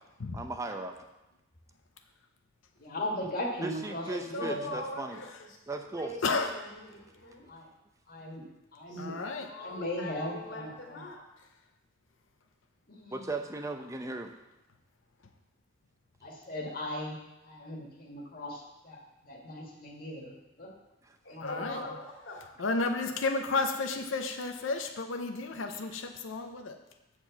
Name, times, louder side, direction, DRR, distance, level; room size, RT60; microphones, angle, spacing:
voice 1, 0.3-1.0 3.6-5.2 5.7-6.1 13.1-14.3 21.0-21.1, right 2 dB, 15° right, 5 dB, 0.6 m, -37 dB
voice 2, 2.8-4.7 7.5-7.7 8.1-8.4 8.7-9.2 9.6-11.0 12.9-13.3 16.2-17.2 17.4-19.0 19.2-20.3 20.6-20.7 21.3-21.9, left 1 dB, 50° left, -1 dB, 1.8 m, -38 dB
voice 3, 4.0-5.6 5.8-7.5 8.9-11.2 21.2-22.4, left 1 dB, 70° left, -2 dB, 2.3 m, -42 dB
voice 4, 9.0-9.5 21.4-21.8 22.6-26.8, left 3 dB, 85° left, 5 dB, 0.7 m, -32 dB
7.9 x 4.5 x 7.0 m, 0.98 s
head